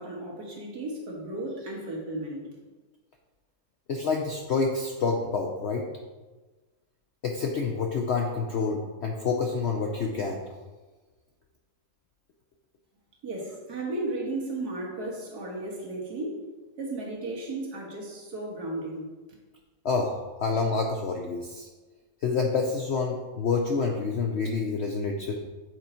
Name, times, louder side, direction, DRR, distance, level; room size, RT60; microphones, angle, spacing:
voice 1, 0.0-2.4 13.2-16.4 16.8-19.1, right 2 dB, 70° right, -2 dB, 1.9 m, -34 dB
voice 2, 3.9-5.8 7.2-10.4 19.8-21.7 22.2-25.5, left 4 dB, 65° left, 1 dB, 0.6 m, -28 dB
7.8 x 3.9 x 4.3 m, 1.3 s
omnidirectional pair, 1.7 m